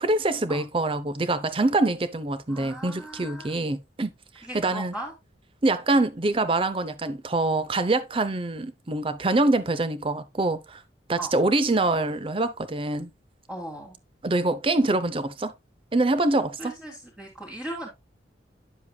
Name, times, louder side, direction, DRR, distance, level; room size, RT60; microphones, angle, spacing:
voice 1, 0.0-4.1 4.4-4.9 5.6-10.8 11.1-13.1 14.2-15.5 15.9-16.7, right 2 dB, 30° right, 0.6 m, -25 dB
voice 2, 2.5-3.5 4.4-5.1 11.2-11.3 13.5-14.0 16.6-17.9, right 1 dB, 5° right, 2.0 m, -38 dB
9.7 x 7.4 x 2.2 m
head